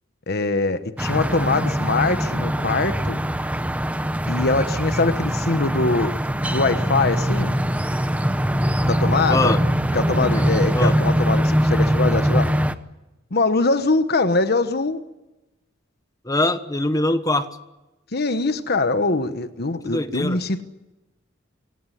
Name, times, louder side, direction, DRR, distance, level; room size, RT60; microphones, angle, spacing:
voice 1, 0.3-3.2 4.3-6.1 6.4-7.6 8.9-9.6 9.9-12.5 13.3-15.0 18.1-20.6, left 3 dB, 55° left, 10 dB, 1.2 m, -22 dB
sound 1, 1.0-12.8, equal, 5° right, 0.9 m, -22 dB
voice 2, 9.3-9.6 10.7-10.9 16.2-17.5 19.8-20.4, left 2 dB, 20° left, 9 dB, 1.3 m, -22 dB
27.5 x 17.5 x 9.9 m, 1.0 s
head